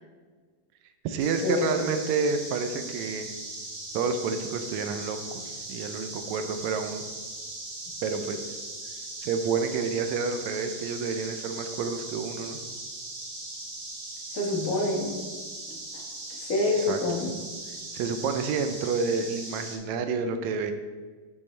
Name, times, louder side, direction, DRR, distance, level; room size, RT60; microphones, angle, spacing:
voice 1, 1.0-3.3 3.9-7.0 8.0-8.5 9.2-12.6 16.8-17.3 17.9-20.7, right 5 dB, 80° right, 7 dB, 1.6 m, -29 dB
sound 1, 1.2-19.8, right 2 dB, 55° right, 1.7 m, -39 dB
voice 2, 14.3-15.2 16.4-17.3, left 2 dB, 60° left, -2 dB, 0.8 m, -26 dB
10.5 x 5.6 x 3.2 m, 1.4 s
omnidirectional pair, 3.7 m